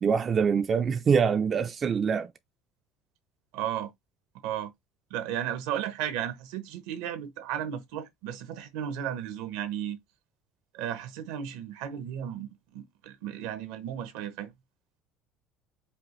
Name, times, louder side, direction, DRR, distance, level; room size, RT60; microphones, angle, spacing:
voice 1, 0.0-2.3, right 6 dB, 30° right, 0.3 m, -24 dB
voice 2, 3.5-3.9 4.4-4.7 5.1-10.0 10.7-14.5, right 10 dB, 80° right, 0.9 m, -34 dB
5.1 x 2.4 x 3.2 m
cardioid pair, 150°, 0 cm